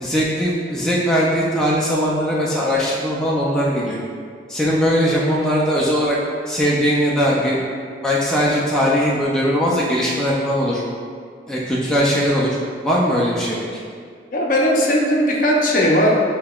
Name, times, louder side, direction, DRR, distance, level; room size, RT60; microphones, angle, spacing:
voice 1, 0.0-4.0 4.5-6.2 6.5-7.6 8.0-10.8 11.5-12.5 12.8-13.8, equal, 5° left, -6 dB, 0.4 m, -19 dB
voice 2, 14.3-16.2, equal, 50° left, -3 dB, 0.6 m, -17 dB
6.6 x 2.8 x 2.3 m, 2.1 s
head